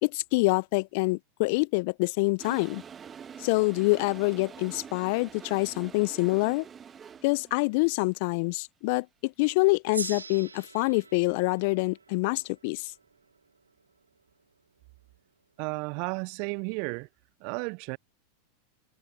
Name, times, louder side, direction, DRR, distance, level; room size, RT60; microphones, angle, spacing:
voice 1, 0.0-2.8 3.4-6.7 7.2-12.9, left 27 dB, 55° left, 0.6 m, -26 dB
Toilet flush, 2.4-7.6, right 7 dB, 25° right, 1.1 m, -46 dB
Gong, 9.9-14.7, right 4 dB, 85° right, 3.3 m, -43 dB
voice 2, 15.6-17.1 17.4-18.0, right 35 dB, 50° right, 0.4 m, -33 dB
figure-of-eight pair, 90°, 0 cm